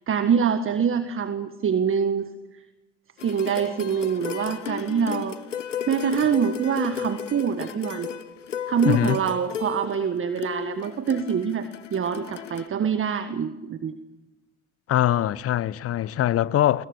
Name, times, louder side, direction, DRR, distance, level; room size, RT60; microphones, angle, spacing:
voice 1, 0.1-2.3 3.2-5.4 5.9-8.1 8.7-11.7 11.9-13.9, right 7 dB, 35° right, 1.6 m, -25 dB
sound 1, 3.2-12.7, left 8 dB, 90° left, 0.8 m, -35 dB
voice 2, 8.9-9.2 14.9-16.8, left 12 dB, 40° left, 0.9 m, -22 dB
29.0 x 21.5 x 6.9 m
figure-of-eight pair, 60°, 36 cm